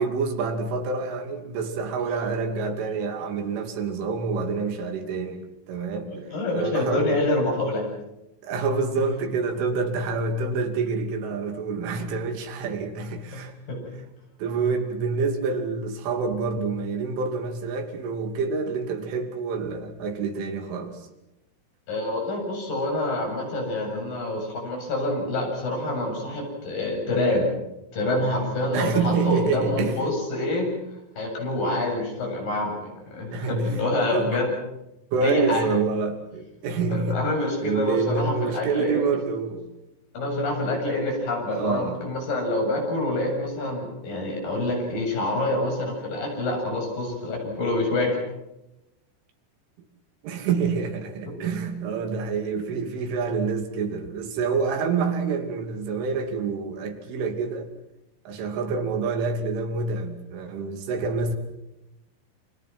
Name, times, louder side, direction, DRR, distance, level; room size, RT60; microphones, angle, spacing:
voice 1, 0.0-6.1 6.6-7.2 8.4-13.5 14.4-21.0 28.7-30.0 33.3-33.8 34.1-34.4 35.1-37.3 37.6-39.7 41.5-42.0 50.2-57.7 58.3-61.4, right 4 dB, 75° right, 5.1 m, -27 dB
voice 2, 6.1-7.8 9.0-9.1 13.3-13.9 21.9-27.5 27.9-30.7 31.2-34.5 35.2-35.7 36.9-39.2 40.1-48.2, left 2 dB, 45° left, 9.4 m, -26 dB
29.0 x 25.0 x 6.1 m
omnidirectional pair, 5.7 m